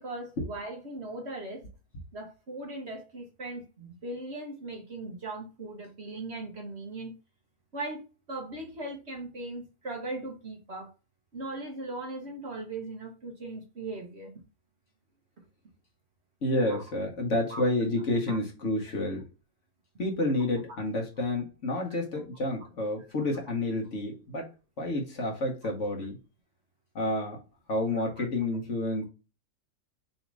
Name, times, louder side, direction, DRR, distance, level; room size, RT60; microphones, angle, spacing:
voice 1, 0.0-1.6 2.1-7.2 7.7-8.0 8.3-10.9 11.3-14.4 16.7-16.8 17.5-17.6 18.3-18.4 21.9-22.0 28.2-28.3, right 2 dB, 45° right, 1.2 m, -39 dB
voice 2, 16.4-19.2 20.0-24.5 24.8-26.2 26.9-27.4 27.7-29.0, left 2 dB, 50° left, 1.3 m, -29 dB
4.1 x 2.8 x 4.6 m
omnidirectional pair, 1.8 m